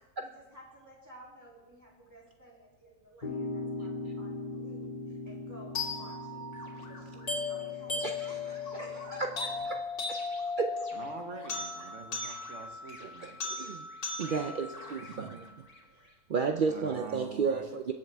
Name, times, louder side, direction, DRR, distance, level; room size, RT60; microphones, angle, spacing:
voice 1, 0.2-9.5, right 1 dB, 10° right, -4 dB, 2.6 m, -52 dB
sound 1, 3.2-9.6, left 2 dB, 30° left, 2.0 m, -41 dB
sound 2, 5.7-15.8, left 3 dB, 90° left, 2.6 m, -37 dB
voice 2, 8.0-8.4 10.1-10.2 10.6-10.8 13.2-13.3 13.7-13.8 14.2-15.3 16.3-17.9, right 5 dB, 80° right, 4 dB, 0.4 m, -31 dB
voice 3, 10.9-13.4 15.0-15.4 16.7-17.6, right 6 dB, 55° right, 5 dB, 1.3 m, -45 dB
21.0 x 7.4 x 3.4 m, 1.2 s
omnidirectional pair, 1.6 m